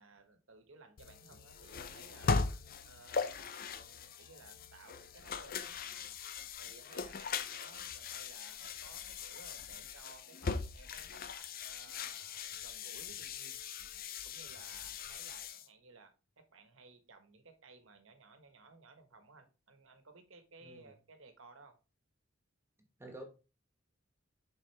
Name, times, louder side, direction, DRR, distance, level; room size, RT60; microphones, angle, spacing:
voice 1, 0.0-2.4 2.8-3.5 3.8-6.2 6.6-13.6 14.2-21.7, right 3 dB, 75° right, 7 dB, 1.4 m, -58 dB
sound 1, 1.0-15.7, left 5 dB, 45° left, 0.5 m, -40 dB
voice 2, 22.8-23.2, right 1 dB, 10° right, 3 dB, 1.2 m, -50 dB
6.5 x 5.4 x 3.4 m, 0.31 s
head